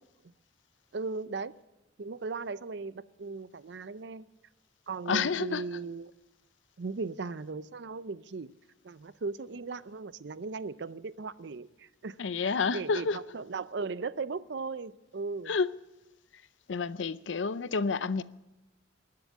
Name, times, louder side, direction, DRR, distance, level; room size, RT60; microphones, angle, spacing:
voice 1, 0.9-1.5 2.0-4.3 4.9-6.1 6.8-8.5 8.8-12.2 12.4-15.5, right 4 dB, 65° right, 0.5 m, -37 dB
voice 2, 5.1-5.6 12.2-13.2 15.5-15.7 16.7-18.2, left 5 dB, 85° left, 0.6 m, -29 dB
20.0 x 7.7 x 8.2 m
head